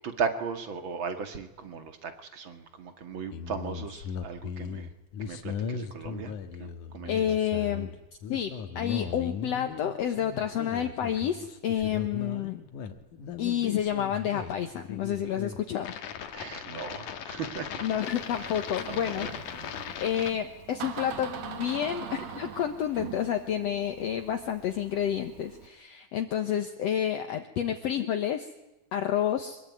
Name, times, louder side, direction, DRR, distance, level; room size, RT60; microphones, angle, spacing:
voice 1, 0.0-4.9 5.2-6.3 6.6-7.3 16.3-17.9 18.4-18.5 18.9-19.3, right 5 dB, 45° right, 8 dB, 2.6 m, -37 dB
sound 1, 3.3-20.3, left 7 dB, 85° left, 3.0 m, -38 dB
voice 2, 7.1-7.9 8.3-12.6 13.4-15.9 17.8-28.5 28.9-29.6, left 9 dB, 60° left, 6 dB, 2.3 m, -30 dB
Door, 18.0-25.7, right 8 dB, 65° right, 2.9 m, -43 dB
24.5 x 22.5 x 9.4 m, 0.96 s
omnidirectional pair, 3.5 m